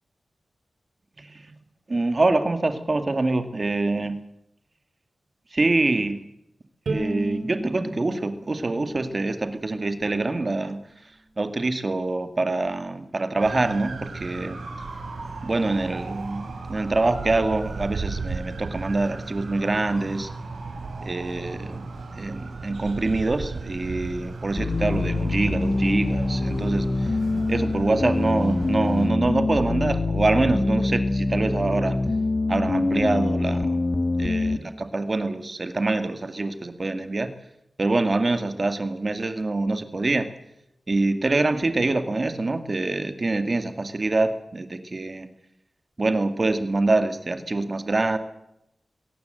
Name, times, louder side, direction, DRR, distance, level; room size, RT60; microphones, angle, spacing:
voice 1, 1.2-1.6 1.9-4.1 5.5-6.2 6.9-10.8 11.4-14.6 15.4-20.3 21.0-21.8 22.2-27.2 27.5-32.0 32.5-33.8 34.2-37.3 37.8-40.3 40.9-45.3 46.0-48.2, right 2 dB, 35° right, 9 dB, 1.9 m, -25 dB
Bowed string instrument, 6.9-10.1, right 2 dB, 70° right, 3.6 m, -34 dB
sound 1, 13.4-29.1, right 3 dB, 85° right, 4.2 m, -35 dB
sound 2, 24.6-34.6, left 2 dB, 40° left, 2.3 m, -25 dB
22.5 x 17.0 x 7.8 m, 0.84 s
wide cardioid pair, 105°, 0 cm